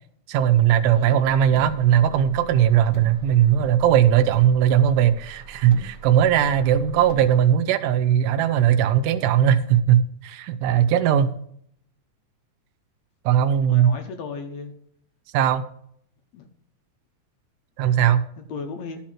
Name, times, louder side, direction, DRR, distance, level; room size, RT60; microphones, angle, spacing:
voice 1, 0.3-11.3 13.3-13.9 15.3-15.6 17.8-18.2, right 10 dB, 85° right, 10 dB, 2.2 m, -19 dB
voice 2, 0.9-1.3 13.7-14.7 16.3-16.5 18.4-19.0, left 5 dB, 65° left, 5 dB, 1.9 m, -35 dB
Car, 1.2-7.5, right 2 dB, 15° left, 0.8 m, -42 dB
12.5 x 4.3 x 7.4 m, 0.66 s
omnidirectional pair, 3.8 m